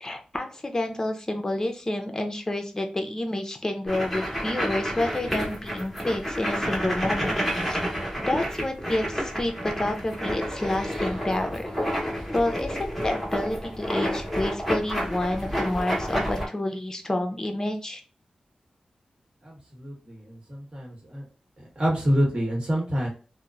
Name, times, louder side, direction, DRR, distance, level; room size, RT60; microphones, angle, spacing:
voice 1, 0.0-7.4 7.7-7.8 8.3-11.7 12.3-18.0, left 1 dB, 20° left, 4 dB, 0.5 m, -29 dB
sound 1, 3.9-16.5, equal, ahead, 0.9 m, -30 dB
voice 2, 19.4-21.2 21.6-23.1, equal, 40° right, -2 dB, 1.2 m, -27 dB
2.9 x 2.0 x 2.4 m, 0.36 s
wide cardioid pair, 90°, 2 cm